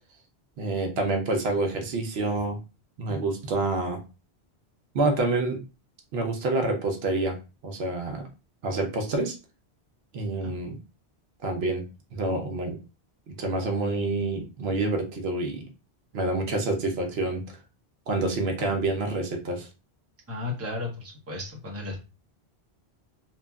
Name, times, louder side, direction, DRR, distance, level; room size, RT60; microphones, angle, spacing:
voice 1, 0.6-2.6 3.0-4.0 4.9-5.6 6.1-7.4 7.6-8.3 8.6-9.4 10.1-10.8 11.4-11.8 12.1-12.8 13.3-15.6 16.1-17.4 18.1-19.7, right 2 dB, 75° right, 3 dB, 0.9 m, -27 dB
voice 2, 20.3-22.0, left 3 dB, 15° right, -2 dB, 0.6 m, -34 dB
2.9 x 2.4 x 2.2 m, 0.31 s
omnidirectional pair, 1.1 m